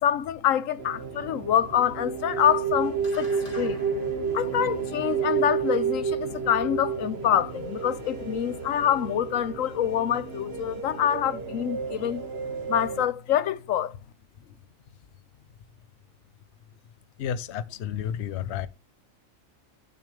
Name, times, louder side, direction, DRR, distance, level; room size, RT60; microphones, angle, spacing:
voice 1, 0.0-3.3 3.6-3.8 4.3-12.2 12.7-14.0, left 10 dB, 80° left, 1.1 m, -26 dB
sound 1, 0.8-13.1, right 6 dB, 50° right, 1.8 m, -31 dB
sound 2, 3.0-7.7, left 1 dB, 40° left, 2.6 m, -45 dB
voice 2, 17.2-18.7, left 9 dB, 60° left, 0.9 m, -31 dB
10.5 x 7.0 x 3.2 m
omnidirectional pair, 1.4 m